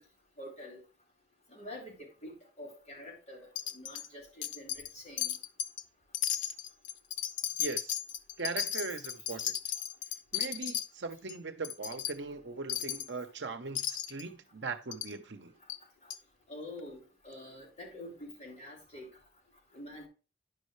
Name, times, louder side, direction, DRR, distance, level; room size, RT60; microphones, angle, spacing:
voice 1, 0.4-0.8 1.5-3.5 3.7-5.3 16.5-19.1 19.7-20.1, left 1 dB, 35° left, 3.8 m, -46 dB
Wind chime, 3.6-4.1 4.4-4.9 5.2-5.8 6.1-10.9 11.3-11.4 11.6-12.1 12.7-13.1 13.8-14.2 14.9-15.1 15.7-15.8 16.1-16.2, left 10 dB, 80° left, 0.5 m, -35 dB
voice 2, 7.6-8.0 8.4-9.5 10.3-15.5, right 4 dB, 65° right, 0.8 m, -39 dB
10.0 x 5.5 x 3.2 m
head